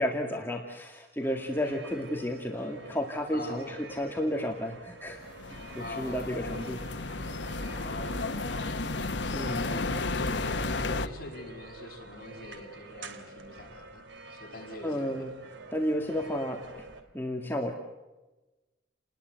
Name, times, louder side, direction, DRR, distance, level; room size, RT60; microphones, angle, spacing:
voice 1, 0.0-5.2 5.5-5.6 6.0-6.8 9.3-9.7 14.8-15.3 15.7-16.9 17.1-17.7, equal, 10° left, 2 dB, 2.1 m, -32 dB
sound 1, 1.2-17.0, right 3 dB, 85° right, 3.2 m, -48 dB
voice 2, 3.3-3.8 5.8-6.6 7.8-8.5 9.6-14.0 14.3-15.2, left 1 dB, 50° left, 1 dB, 7.8 m, -42 dB
sound 2, 5.1-11.1, left 3 dB, 75° left, 1.3 m, -33 dB
30.0 x 20.0 x 8.3 m, 1.1 s
head